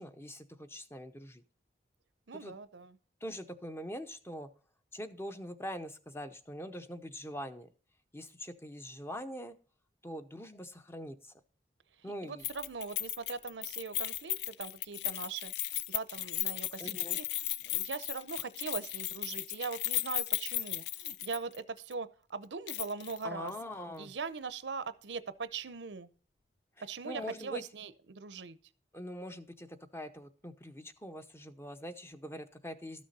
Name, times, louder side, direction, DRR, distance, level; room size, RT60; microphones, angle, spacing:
voice 1, 0.0-1.4 2.3-2.5 3.2-4.5 4.9-7.7 8.1-9.6 10.0-11.3 12.0-12.4 16.8-17.2 23.2-24.1 26.8-27.6 28.9-29.7 29.9-33.0, equal, 15° left, 0.7 m, -43 dB
voice 2, 2.3-3.0 12.0-23.5 24.0-26.1 26.8-28.6, right 5 dB, 90° right, 0.7 m, -41 dB
Keys jangling, 12.4-21.6 21.9-22.0 22.7-23.2 23.5-23.6, left 14 dB, 75° left, 0.4 m, -36 dB
13.0 x 6.2 x 4.1 m
head